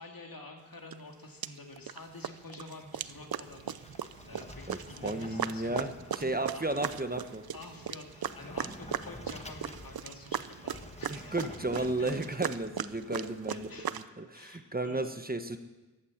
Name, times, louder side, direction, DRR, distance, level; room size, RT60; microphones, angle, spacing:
voice 1, 0.0-5.8 6.5-6.8 7.5-11.4 11.8-12.1 13.5-15.2, left 2 dB, 70° left, 2 dB, 2.4 m, -49 dB
sound 1, 0.9-1.0 1.4-2.0 2.2-14.0, right 8 dB, 80° right, 0.6 m, -38 dB
Sliding door, 3.1-12.5, left 1 dB, 20° left, 1.3 m, -49 dB
voice 2, 4.7-7.4 11.1-13.7 14.2-15.6, right 2 dB, 25° right, 8 dB, 1.1 m, -33 dB
14.5 x 12.0 x 7.3 m, 1.1 s
wide cardioid pair, 80°, 36 cm